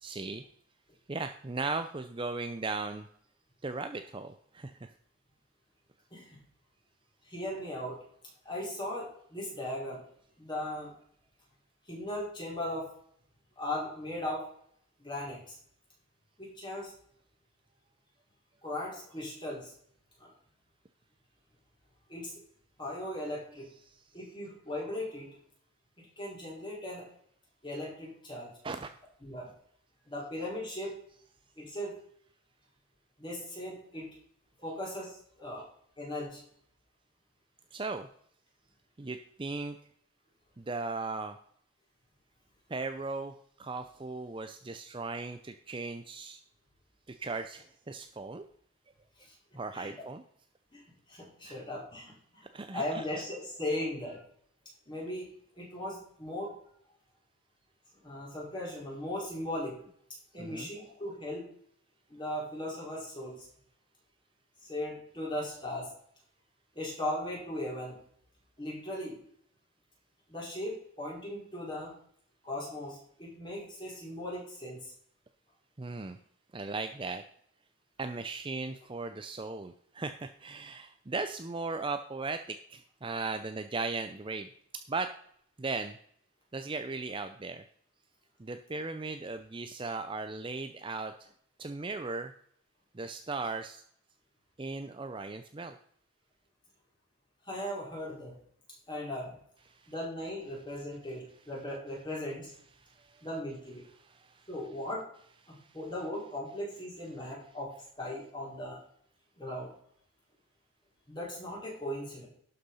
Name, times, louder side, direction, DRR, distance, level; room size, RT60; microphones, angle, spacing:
voice 1, 0.0-0.4 1.1-3.1 3.6-4.9 23.6-24.0 28.6-28.9 30.8-30.9 37.7-38.1 39.0-39.8 40.6-41.4 42.7-46.4 47.1-48.4 49.5-50.2 51.4-51.6 52.5-53.2 60.4-60.7 75.8-76.2 76.5-77.2 78.0-84.5 84.9-85.1 85.6-86.0 86.5-87.6 88.4-91.3 91.6-92.3 92.9-93.8 94.6-95.8 99.6-100.0 101.4-101.6 102.6-103.4 103.7-104.9 105.2-106.0, right 3 dB, 25° right, 8 dB, 0.5 m, -38 dB
voice 2, 7.2-8.0 8.4-10.0 10.4-10.9 11.8-12.9 13.6-14.4 15.0-15.6 16.4-16.9 18.6-19.7 20.2-20.3 22.1-22.3 22.8-23.7 24.1-25.3 26.0-27.1 27.6-28.5 29.2-29.5 30.1-30.9 31.6-31.9 33.2-34.1 34.6-35.7 36.0-36.4 49.2-49.4 49.7-49.9 50.7-50.8 51.1-54.2 54.9-55.3 55.5-56.5 58.0-59.8 60.3-61.5 62.1-63.5 64.6-65.9 66.7-68.0 68.6-69.2 70.3-71.9 72.4-74.9 97.4-98.3 98.9-99.4 99.9-102.5 103.2-103.8 104.5-105.0 105.5-107.7 108.0-108.8 109.4-109.7 111.1-112.3, left 1 dB, 20° left, -4 dB, 4.8 m, -38 dB
11.5 x 6.7 x 5.6 m, 0.63 s
head